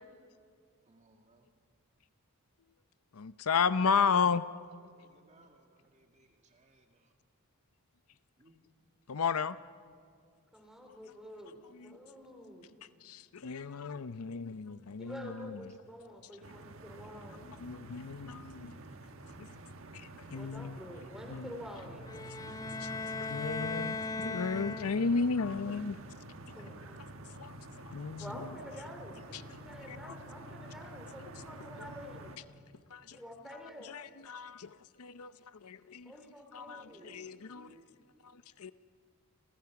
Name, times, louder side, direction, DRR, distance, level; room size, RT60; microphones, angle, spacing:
voice 1, 0.9-1.5 5.0-7.1 8.4-8.7 15.3-15.8 23.8-25.4 36.7-38.2, right 1 dB, 30° right, 4 dB, 1.8 m, -59 dB
voice 2, 3.1-4.4 9.1-9.6 11.7-12.0 13.0-15.7 17.5-18.8 19.9-20.8 21.3-21.5 22.8-26.0 27.4-27.5 27.9-28.3 29.3-29.4 29.9-30.2 32.9-33.2 33.8-35.3 35.6-36.1 36.5-37.7 38.2-38.7, left 5 dB, 80° left, 14 dB, 0.7 m, -34 dB
voice 3, 10.5-12.7 15.0-17.4 20.3-22.2 25.7-25.8 26.5-27.0 28.2-32.4 33.1-33.9 36.1-37.1, equal, ahead, 2 dB, 4.2 m, -48 dB
sound 1, 16.4-32.4, right 1 dB, 60° right, 1.5 m, -48 dB
sound 2, 22.0-25.3, left 3 dB, 15° left, 0.6 m, -38 dB
29.0 x 27.5 x 5.9 m, 2.2 s
head